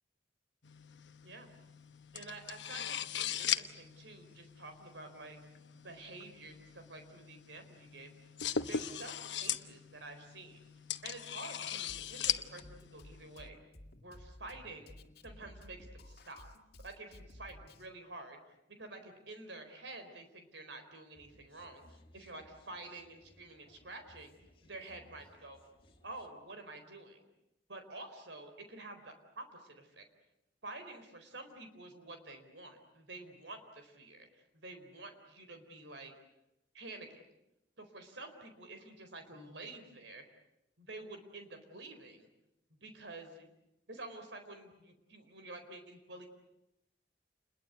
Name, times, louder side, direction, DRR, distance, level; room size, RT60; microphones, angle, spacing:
sound 1, 0.6-13.5, left 9 dB, 80° left, 1.1 m, -40 dB
voice 1, 2.1-5.4 5.8-8.3 8.6-10.7 11.0-13.6 14.0-14.9 15.2-16.5 16.8-18.4 18.8-24.3 24.6-25.6 26.0-27.2 27.7-30.0 30.6-36.1 36.7-37.2 37.8-40.2 40.8-42.3 42.7-43.5 43.9-46.3, right 2 dB, 85° right, 7 dB, 4.3 m, -49 dB
Drum kit, 11.9-17.9, left 1 dB, 60° left, 2.4 m, -55 dB
sound 2, 21.1-26.3, left 1 dB, 30° left, 3.6 m, -63 dB
29.0 x 21.5 x 8.1 m, 0.87 s
head